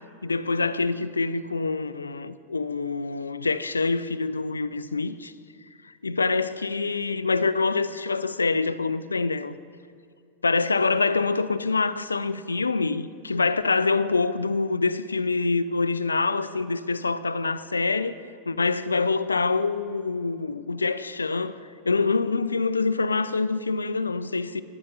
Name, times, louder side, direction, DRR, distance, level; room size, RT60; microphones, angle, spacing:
voice 1, 0.2-5.3 5.8-9.5 10.4-18.2 18.5-21.6 21.9-24.6, left 4 dB, 75° left, 0.4 m, -25 dB
12.0 x 9.7 x 5.5 m
figure-of-eight pair, 90°, 0 cm